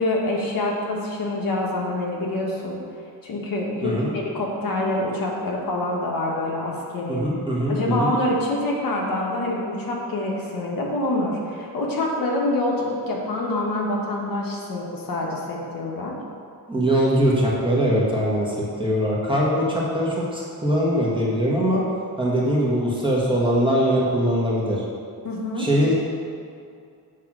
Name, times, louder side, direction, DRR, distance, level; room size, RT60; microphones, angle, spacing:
voice 1, 0.0-2.8 3.2-7.2 7.7-16.1 25.2-25.7, left 1 dB, 60° left, -2 dB, 1.3 m, -26 dB
voice 2, 3.8-4.1 7.1-8.1 16.7-21.8 22.2-24.8 25.6-25.9, equal, 15° right, -5 dB, 1.5 m, -22 dB
7.5 x 3.5 x 6.1 m, 2.4 s
cardioid pair, 120°, 39 cm